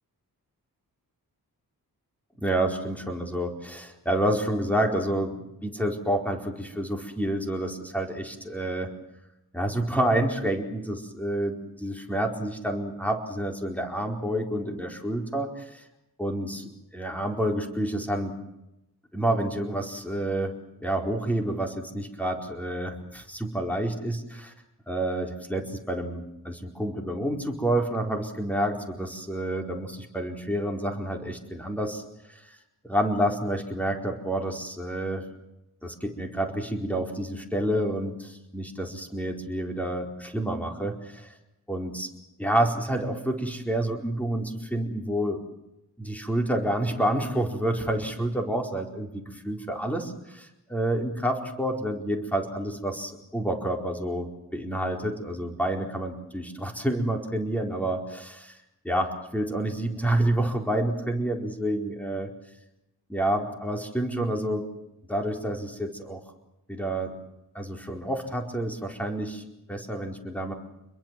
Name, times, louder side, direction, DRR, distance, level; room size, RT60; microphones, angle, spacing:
voice 1, 2.4-8.9 9.5-15.8 16.2-18.3 19.1-24.5 24.9-32.0 32.3-32.4 32.8-35.2 35.8-41.3 41.7-42.1 42.4-45.4 46.0-58.6 58.8-62.3 63.1-64.7 65.1-66.2 66.7-67.1 67.5-69.4 69.7-70.5, right 1 dB, 5° left, 3 dB, 4.5 m, -29 dB
27.5 x 22.5 x 7.6 m, 0.88 s
wide cardioid pair, 105°, 37 cm